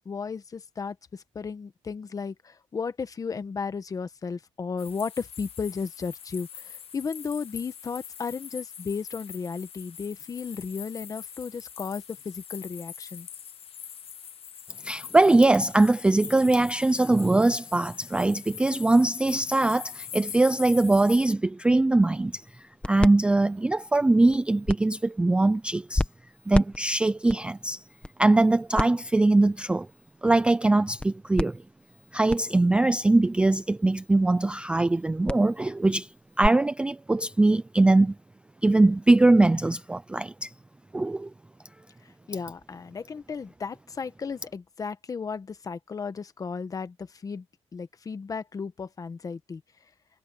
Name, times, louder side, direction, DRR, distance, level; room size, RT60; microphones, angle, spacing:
voice 1, 0.0-13.3 42.3-47.4 47.7-49.6, left 5 dB, 30° left, 1.0 m, -34 dB
sound 1, 4.8-21.3, left 8 dB, 50° left, 1.3 m, -43 dB
voice 2, 14.8-22.4 22.8-26.0 26.5-27.8 28.2-29.9 30.2-31.6 32.1-36.1 36.4-38.1 38.6-40.5 40.9-41.3, right 2 dB, 10° right, 0.3 m, -22 dB
sound 2, 22.0-36.5, left 2 dB, 10° left, 1.1 m, -35 dB
wide cardioid pair, 175°, 12 cm